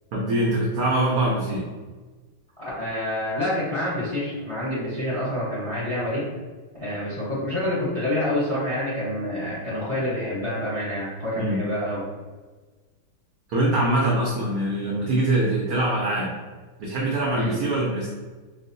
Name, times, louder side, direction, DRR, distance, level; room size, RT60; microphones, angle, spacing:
voice 1, 0.1-1.7 11.4-11.6 13.5-16.3 16.8-18.1, right 1 dB, 85° right, -4 dB, 0.8 m, -23 dB
voice 2, 2.6-6.2 6.8-12.1 17.3-17.6, left 1 dB, 55° left, -8 dB, 0.3 m, -27 dB
4.4 x 2.0 x 2.6 m, 1.3 s
omnidirectional pair, 2.2 m